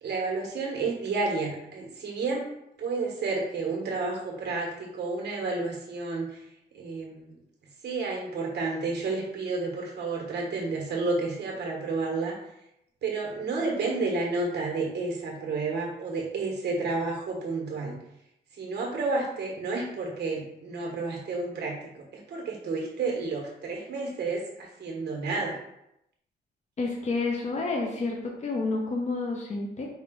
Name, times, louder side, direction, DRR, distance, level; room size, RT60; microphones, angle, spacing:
voice 1, 0.0-2.5 2.8-6.4 6.7-7.4 7.8-12.3 13.0-18.0 18.6-25.6, right 3 dB, 70° right, -1 dB, 1.3 m, -31 dB
voice 2, 26.8-29.9, left 3 dB, 40° left, -1 dB, 0.7 m, -29 dB
5.2 x 2.4 x 3.8 m, 0.81 s
cardioid pair, 105°, 18 cm